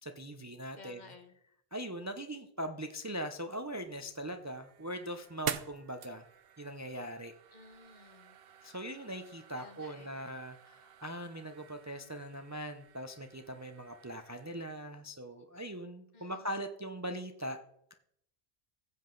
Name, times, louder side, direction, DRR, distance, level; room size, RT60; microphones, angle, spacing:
voice 1, 0.0-1.0 1.7-6.2 6.6-7.3 8.6-17.6, equal, 20° right, 7 dB, 0.5 m, -41 dB
voice 2, 0.7-1.3 7.5-8.4 9.5-10.2 16.1-16.6, left 4 dB, 45° left, 7 dB, 1.2 m, -55 dB
sound 1, 3.8-14.7, right 8 dB, 70° right, 0.9 m, -47 dB
14.5 x 7.7 x 3.9 m, 0.74 s
omnidirectional pair, 1.0 m